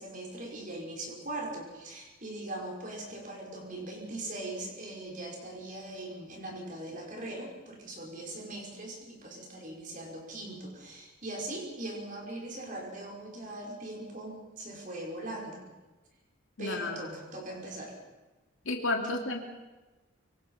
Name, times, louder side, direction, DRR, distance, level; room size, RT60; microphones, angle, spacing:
voice 1, 0.0-15.6 16.6-18.0, right 1 dB, 40° right, -1 dB, 5.8 m, -40 dB
voice 2, 16.6-17.2 18.6-19.4, left 2 dB, 75° left, 2 dB, 2.6 m, -32 dB
25.5 x 24.0 x 5.9 m, 1.2 s
head